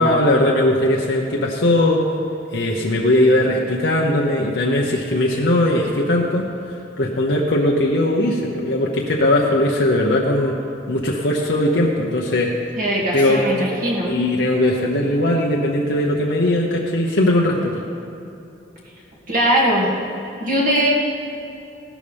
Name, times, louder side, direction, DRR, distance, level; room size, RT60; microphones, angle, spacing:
voice 1, 0.0-2.1 2.5-6.5 7.0-10.6 10.9-12.5 13.1-13.7 14.1-17.7, left 1 dB, 80° left, -2 dB, 1.0 m, -19 dB
voice 2, 12.8-14.1 19.3-19.9 20.4-20.9, right 1 dB, 50° right, -4 dB, 2.4 m, -20 dB
16.5 x 12.0 x 3.5 m, 2.8 s
head